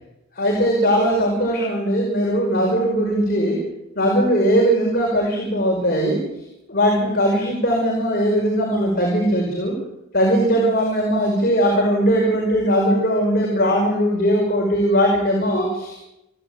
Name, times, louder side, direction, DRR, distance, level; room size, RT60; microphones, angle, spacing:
voice 1, 0.4-3.6 4.0-6.2 6.7-9.7 10.1-16.0, equal, 50° left, 0 dB, 5.7 m, -19 dB
29.0 x 11.0 x 9.1 m, 0.88 s
head